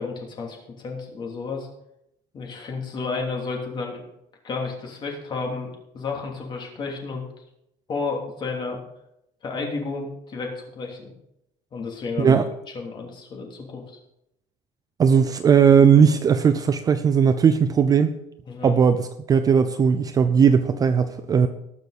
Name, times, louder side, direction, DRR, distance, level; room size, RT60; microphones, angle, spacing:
voice 1, 0.0-1.7 2.3-4.0 4.4-7.2 7.9-8.8 9.4-11.1 11.7-12.4 12.7-14.0 18.5-18.7, left 4 dB, 30° left, 0 dB, 3.0 m, -32 dB
voice 2, 15.0-18.1 18.6-21.5, right 7 dB, 25° right, 10 dB, 0.6 m, -18 dB
19.5 x 6.6 x 4.2 m, 0.80 s
cardioid pair, 160°, 15 cm